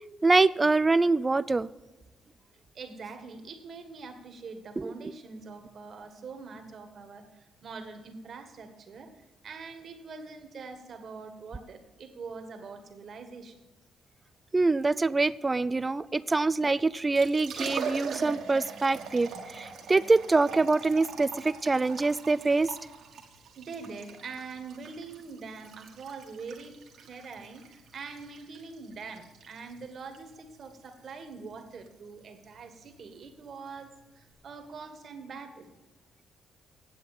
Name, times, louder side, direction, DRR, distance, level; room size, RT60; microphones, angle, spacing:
voice 1, 0.2-1.7 4.8-4.9 14.5-19.3 19.6-22.7, right 3 dB, 25° right, 17 dB, 0.4 m, -25 dB
voice 2, 2.7-9.1 9.4-13.6 16.1-16.3 23.6-35.7, right 4 dB, 55° right, 7 dB, 1.7 m, -44 dB
Liquid, 16.9-34.3, right 6 dB, 70° right, 1.6 m, -42 dB
9.4 x 7.8 x 7.6 m, 1.1 s
cardioid pair, 90°, 0 cm